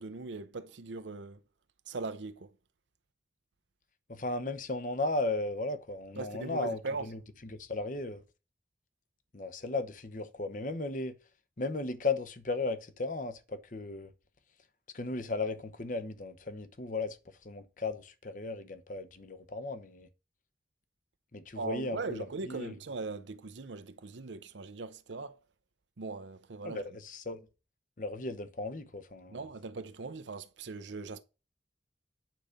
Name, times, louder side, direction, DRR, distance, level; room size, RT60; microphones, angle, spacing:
voice 1, 0.0-1.4 1.9-2.5 6.2-7.1 21.5-25.4 26.0-26.8 29.3-31.2, right 3 dB, 85° right, 0.7 m, -40 dB
voice 2, 4.1-8.2 9.3-11.1 11.6-14.1 14.9-17.2 17.4-20.1 21.3-22.7 26.6-27.5 28.0-29.4, left 2 dB, 45° left, 0.9 m, -36 dB
9.1 x 6.5 x 5.1 m
head